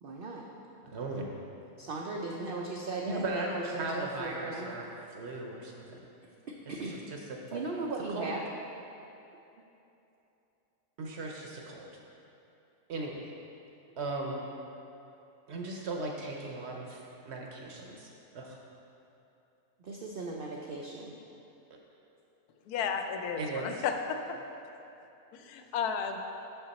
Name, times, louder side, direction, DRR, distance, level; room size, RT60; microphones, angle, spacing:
voice 1, 0.0-0.4 1.8-4.7 6.5-7.0 7.5-8.4 19.8-21.1, right 3 dB, 90° right, -1 dB, 0.4 m, -37 dB
voice 2, 0.8-1.3 3.0-6.0 7.1-7.6 8.1-8.3 11.0-11.9 12.9-13.2 14.0-14.4 15.5-18.6 23.4-23.8, right 2 dB, 60° right, 0 dB, 0.8 m, -37 dB
voice 3, 22.7-24.4 25.3-26.2, left 6 dB, 85° left, 5 dB, 1.1 m, -33 dB
6.6 x 5.7 x 4.0 m, 2.9 s
omnidirectional pair, 1.6 m